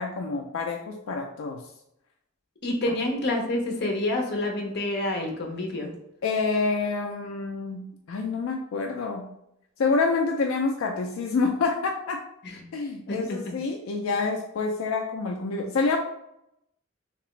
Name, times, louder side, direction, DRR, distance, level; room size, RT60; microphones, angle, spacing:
voice 1, 0.0-1.6 6.2-9.3 9.8-12.2 12.7-16.0, left 4 dB, 80° left, 2 dB, 0.4 m, -27 dB
voice 2, 2.6-5.9 12.4-12.6 13.1-13.5, left 1 dB, 55° left, 2 dB, 0.8 m, -28 dB
3.3 x 2.9 x 3.1 m, 0.81 s
head